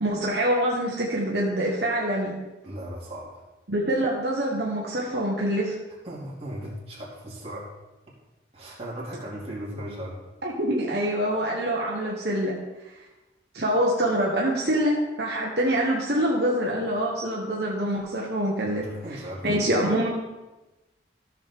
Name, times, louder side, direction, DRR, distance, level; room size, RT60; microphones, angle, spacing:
voice 1, 0.0-2.3 3.7-5.7 10.4-12.5 13.5-18.8 19.4-20.1, right 1 dB, 65° right, -3 dB, 1.3 m, -25 dB
voice 2, 2.6-3.4 6.0-7.7 8.5-10.2 18.6-19.8, equal, 30° right, -6 dB, 2.8 m, -37 dB
14.0 x 6.5 x 3.7 m, 1.1 s
head